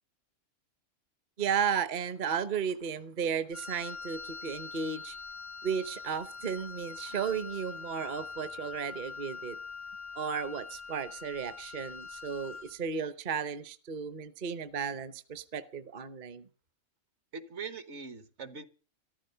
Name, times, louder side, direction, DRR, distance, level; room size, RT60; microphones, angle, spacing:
voice 1, 1.4-5.2 5.6-9.6 10.1-16.5, right 7 dB, 45° right, 0.9 m, -34 dB
Wind instrument woodwind instrument, 3.5-12.8, left 5 dB, 15° left, 0.5 m, -44 dB
voice 2, 17.3-18.6, right 5 dB, 60° right, 1.5 m, -42 dB
14.0 x 12.5 x 6.7 m
omnidirectional pair, 1.3 m